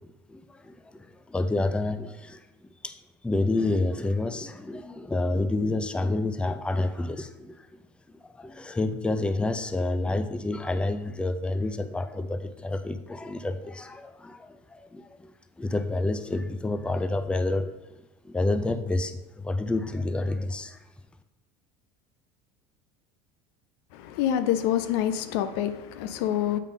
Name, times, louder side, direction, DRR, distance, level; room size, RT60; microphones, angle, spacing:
voice 1, 1.3-2.4 2.8-2.9 3.2-7.6 8.4-15.1 15.6-17.7 18.3-20.8, left 2 dB, 5° left, 0.5 m, -28 dB
voice 2, 23.9-26.6, left 10 dB, 75° left, 0.6 m, -26 dB
7.5 x 5.0 x 3.8 m
supercardioid pair, 95°, 14 cm